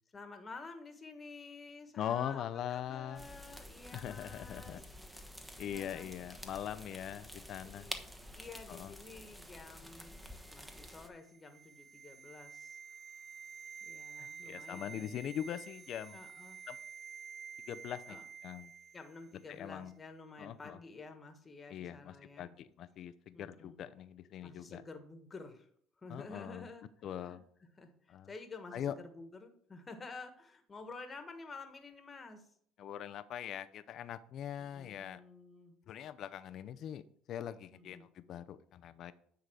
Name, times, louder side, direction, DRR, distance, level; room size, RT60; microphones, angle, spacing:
voice 1, 0.1-4.8 5.6-6.1 7.6-12.8 13.8-15.4 16.1-16.6 18.1-18.2 18.9-22.5 23.3-23.8 24.4-25.7 26.0-27.4 27.8-32.5 34.6-35.7 37.7-38.1, left 3 dB, 25° left, 7 dB, 1.5 m, -51 dB
voice 2, 2.0-3.2 3.9-4.8 5.6-7.9 8.7-8.9 14.2-16.2 16.7-16.8 17.7-18.2 18.4-18.7 19.5-19.9 20.4-20.8 21.7-24.8 26.1-26.7 27.0-27.4 28.1-28.3 28.7-28.9 32.8-35.2 35.9-37.0 37.3-39.1, left 10 dB, 55° left, 13 dB, 0.6 m, -42 dB
sound 1, 3.1-11.1, equal, 5° right, 1.1 m, -49 dB
sound 2, 10.0-19.3 19.6-19.7, right 6 dB, 35° right, 0.5 m, -51 dB
9.6 x 3.9 x 6.2 m, 0.63 s
supercardioid pair, 85°, 0 cm